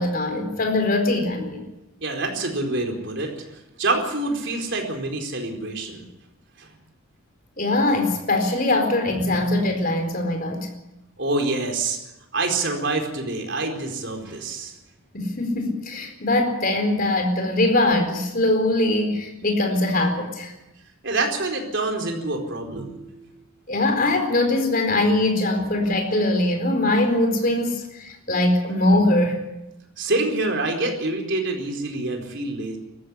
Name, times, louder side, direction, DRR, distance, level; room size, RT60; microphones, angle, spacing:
voice 1, 0.0-1.6 7.6-10.7 15.1-20.5 23.7-29.4, left 2 dB, 40° left, 5 dB, 4.5 m, -22 dB
voice 2, 2.0-3.5 3.8-6.1 6.6-6.7 11.2-12.0 12.3-14.7 21.0-23.3 30.0-32.8, right 2 dB, 55° right, 3 dB, 4.5 m, -26 dB
19.0 x 15.0 x 9.9 m, 0.91 s
head